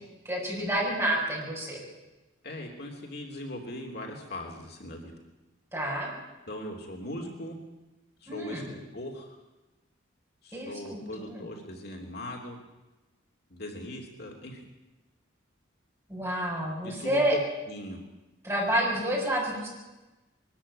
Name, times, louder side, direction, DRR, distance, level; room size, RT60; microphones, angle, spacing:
voice 1, 0.2-1.8 5.7-6.1 8.3-8.7 10.5-11.5 16.1-17.3 18.4-19.7, right 1 dB, 15° right, -3 dB, 6.8 m, -29 dB
voice 2, 2.4-5.1 6.5-7.6 8.2-9.4 10.4-12.6 13.5-14.6 16.8-17.4 17.7-18.0, left 1 dB, 55° left, 1 dB, 3.3 m, -39 dB
22.5 x 13.5 x 10.0 m, 1.1 s
head